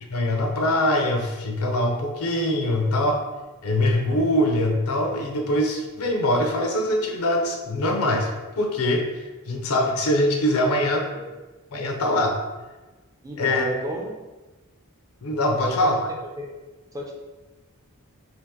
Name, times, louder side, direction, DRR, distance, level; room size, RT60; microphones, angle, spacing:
voice 1, 0.1-3.2 3.6-9.1 9.5-11.1 11.7-12.4 13.4-13.7 15.2-16.0, left 1 dB, 80° left, 2 dB, 0.5 m, -23 dB
voice 2, 13.2-14.1 15.6-15.7 16.4-16.5 16.9-17.2, right 1 dB, 15° right, -1 dB, 0.4 m, -32 dB
2.8 x 2.5 x 3.5 m, 1.2 s
head